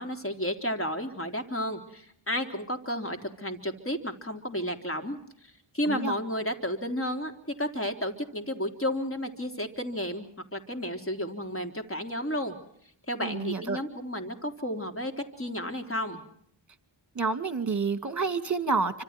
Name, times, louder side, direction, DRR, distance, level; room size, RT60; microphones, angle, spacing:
voice 1, 0.0-5.2 5.7-7.3 7.6-10.3 10.5-12.6 13.1-15.1 15.4-16.2, equal, 25° left, 5 dB, 3.7 m, -32 dB
voice 2, 13.2-13.8 17.2-19.0, right 4 dB, 35° right, 10 dB, 2.4 m, -29 dB
29.5 x 25.5 x 4.5 m, 0.68 s
cardioid pair, 65°, 49 cm